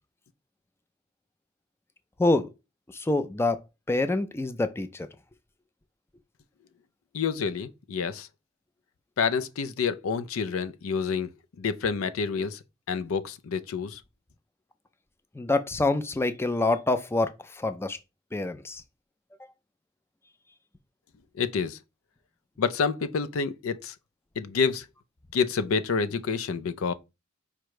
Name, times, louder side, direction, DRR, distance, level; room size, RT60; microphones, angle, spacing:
voice 1, 2.9-3.6 3.9-5.1 15.4-18.0 18.3-18.8, left 2 dB, 10° left, 0.3 m, -26 dB
voice 2, 7.1-8.3 9.2-11.3 11.6-12.6 12.9-14.0 21.3-21.8 22.6-23.9 24.4-24.9 25.3-26.9, left 5 dB, 90° left, 0.4 m, -28 dB
5.0 x 2.2 x 4.6 m
head